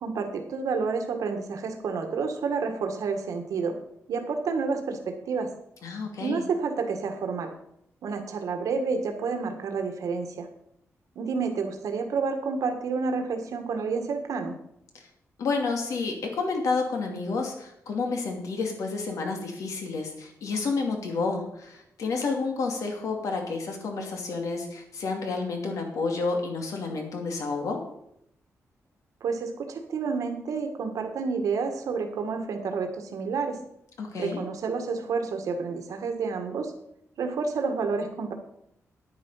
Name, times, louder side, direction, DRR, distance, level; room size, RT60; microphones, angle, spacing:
voice 1, 0.0-3.7 4.1-5.5 6.2-7.5 8.0-10.5 11.1-14.5 29.2-33.6 34.2-36.7 37.2-38.3, right 4 dB, 85° right, 5 dB, 1.6 m, -29 dB
voice 2, 5.8-6.4 15.4-27.8 34.0-34.4, left 4 dB, 75° left, 2 dB, 2.6 m, -30 dB
9.8 x 9.6 x 5.6 m, 0.75 s
wide cardioid pair, 170°, 6 cm